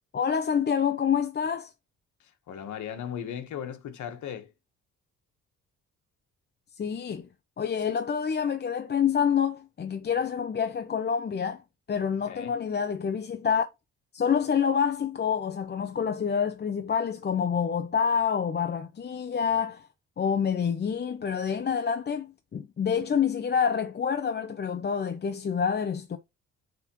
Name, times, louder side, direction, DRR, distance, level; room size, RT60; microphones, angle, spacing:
voice 1, 0.1-1.7 6.8-7.3 7.6-11.6 11.9-13.7 14.1-19.9 20.2-26.2, left 7 dB, 35° left, 0.7 m, -27 dB
voice 2, 2.2-4.5 12.3-12.6, left 9 dB, 70° left, 1.4 m, -37 dB
9.5 x 3.6 x 3.0 m
cardioid pair, 90°, 30 cm